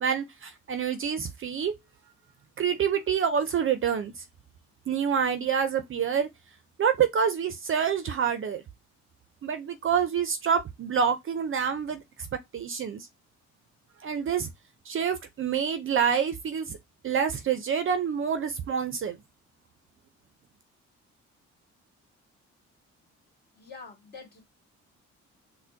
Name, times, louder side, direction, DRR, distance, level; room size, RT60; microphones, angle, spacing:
voice 1, 0.0-1.7 2.6-4.1 4.9-6.3 6.8-8.6 9.4-12.3 12.5-13.1 14.0-14.5 14.9-16.8 17.0-19.2, right 7 dB, 45° right, 0.5 m, -27 dB
voice 2, 23.6-24.4, left 4 dB, 30° left, 1.8 m, -45 dB
4.1 x 2.1 x 2.6 m
cardioid pair, 90°, 30 cm